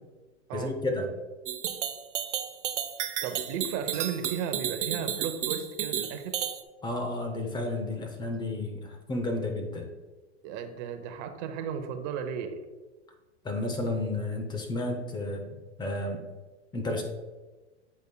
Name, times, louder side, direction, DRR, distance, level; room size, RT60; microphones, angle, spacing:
voice 1, 0.5-1.1 6.8-9.9 13.4-16.2 16.7-17.0, left 2 dB, 15° left, 4 dB, 0.7 m, -32 dB
sound 1, 1.5-6.6, right 9 dB, 85° right, 0.7 m, -32 dB
voice 2, 3.2-6.4 10.4-12.6, right 7 dB, 40° right, 7 dB, 0.8 m, -35 dB
8.1 x 5.1 x 2.2 m, 1.2 s
hypercardioid pair, 125°, 35 cm